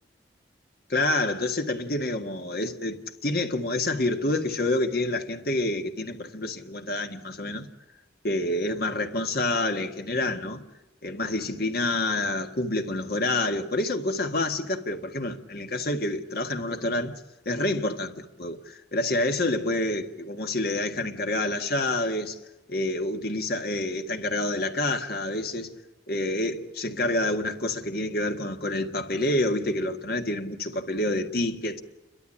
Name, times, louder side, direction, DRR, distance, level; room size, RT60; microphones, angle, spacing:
voice 1, 0.9-7.7 8.2-10.6 11.0-17.2 17.5-22.4 22.7-25.7 26.1-31.8, left 2 dB, 55° left, 1.7 m, -28 dB
29.5 x 13.0 x 9.9 m
head